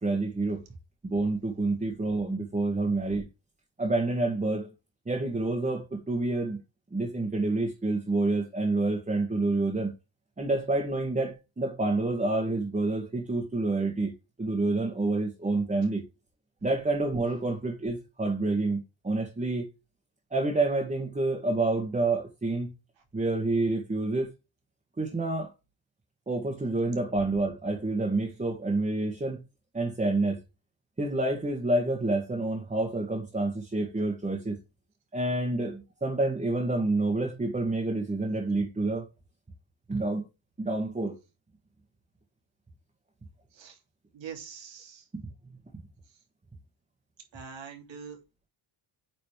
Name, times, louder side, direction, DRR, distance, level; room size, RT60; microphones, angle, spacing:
voice 1, 0.0-0.6 1.0-3.3 3.8-4.7 5.1-6.6 6.9-9.9 10.4-14.1 14.4-16.0 16.6-19.7 20.3-22.7 23.1-24.3 25.0-25.5 26.3-29.4 29.7-30.4 31.0-34.6 35.1-39.1 39.9-40.3 40.6-41.2 45.1-45.3, right 2 dB, 15° right, 1.6 m, -28 dB
voice 2, 44.1-45.0 47.3-48.2, right 7 dB, 65° right, 2.9 m, -43 dB
8.9 x 4.2 x 3.4 m
cardioid pair, 145°, 48 cm